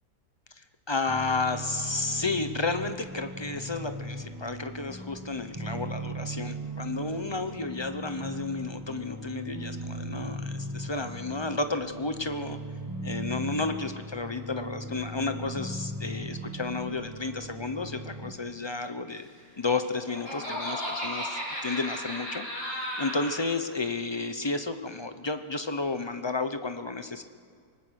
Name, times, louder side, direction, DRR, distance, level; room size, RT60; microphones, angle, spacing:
voice 1, 0.6-12.6 13.0-19.3 19.6-27.2, left 3 dB, 40° left, 9 dB, 0.4 m, -32 dB
sound 1, 1.1-18.3, right 2 dB, 15° right, 1.3 m, -38 dB
Laughter, 19.6-23.4, equal, 70° left, 8.0 m, -34 dB
25.0 x 19.5 x 6.4 m, 2.1 s
omnidirectional pair, 1.9 m